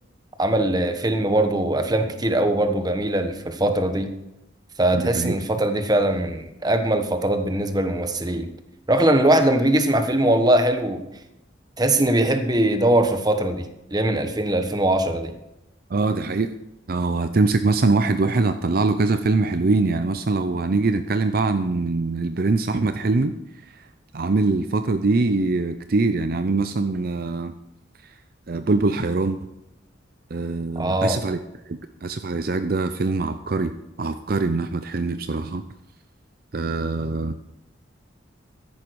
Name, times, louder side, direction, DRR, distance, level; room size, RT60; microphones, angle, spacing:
voice 1, 0.4-4.1 4.8-8.5 8.9-11.0 11.8-15.3 30.7-31.2, right 1 dB, 20° right, 7 dB, 1.2 m, -21 dB
voice 2, 4.9-5.3 15.9-16.5 16.9-23.3 23.7-23.8 24.1-27.5 28.5-29.4 30.3-31.4 31.7-35.6 36.5-37.3, right 3 dB, 50° right, 9 dB, 0.5 m, -23 dB
14.0 x 10.5 x 4.7 m, 0.91 s
head